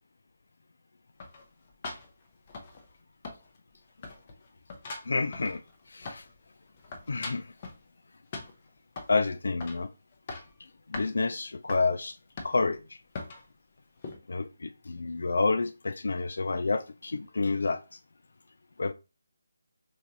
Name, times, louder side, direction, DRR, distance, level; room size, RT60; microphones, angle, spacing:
sound 1, 1.2-3.0 3.2-3.8 4.0-6.4 6.7-7.8 8.3-9.2 9.6-9.9 10.1-10.6 10.9-11.1 11.7-11.9 12.4-12.8 13.1-13.5 14.0-14.2, left 3 dB, 35° left, 0.8 m, -41 dB
voice 1, 5.1-5.6 5.9-6.2 7.1-7.5 9.1-9.9 10.9-12.1 12.4-12.8 14.3-17.8 18.8-18.9, left 3 dB, 70° left, 0.3 m, -29 dB
3.1 x 2.5 x 3.9 m
figure-of-eight pair, 155°, 0 cm